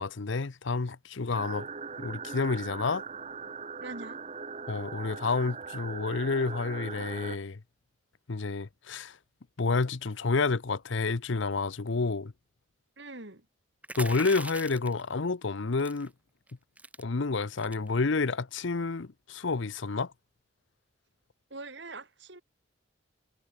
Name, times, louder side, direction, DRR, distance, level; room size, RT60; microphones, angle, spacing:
voice 1, 0.0-1.7 2.0-3.0 4.7-7.6 8.3-9.2 9.6-12.3 14.0-16.1 17.0-20.1, left 4 dB, 65° left, 0.7 m, -29 dB
sound 1, 1.3-7.4, right 5 dB, 30° right, 1.1 m, -40 dB
voice 2, 3.8-4.2 13.0-13.5 21.5-22.4, right 2 dB, 55° right, 3.0 m, -43 dB
sound 2, 13.8-15.0 15.8-16.1 16.5-16.6 16.8-17.0 17.6-17.9, right 2 dB, 5° right, 0.7 m, -40 dB
head